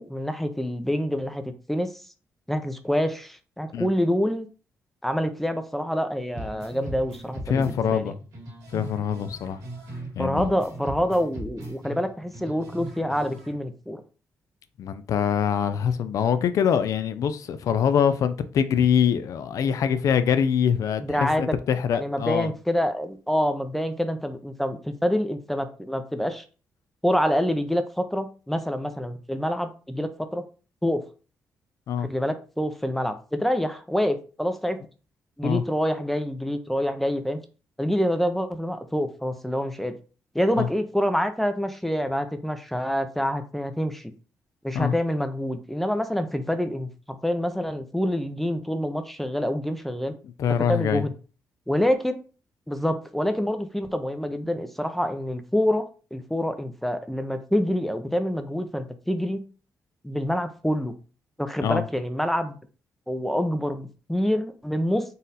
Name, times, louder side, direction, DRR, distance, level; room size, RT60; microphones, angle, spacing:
voice 1, 0.0-2.0 2.5-4.5 5.0-8.0 10.2-14.0 21.0-21.6 21.9-26.4 27.0-30.4 30.8-31.0 32.0-34.8 35.4-37.4 37.8-40.0 40.3-44.1 44.6-50.1 50.7-51.1 51.7-52.2 52.7-55.8 56.1-59.4 60.0-60.9 61.4-62.6 63.1-65.0, equal, 5° left, 0.5 m, -26 dB
sound 1, 6.4-10.1 10.4-13.6, right 1 dB, 80° right, 1.9 m, -38 dB
voice 2, 7.5-8.2 8.7-9.6 10.2-10.5 14.8-22.5 31.9-32.1 35.4-35.6 40.6-40.7 44.7-44.9 50.4-51.0 61.6-61.9, left 8 dB, 70° left, 0.5 m, -24 dB
4.0 x 2.5 x 4.0 m
cardioid pair, 90°, 6 cm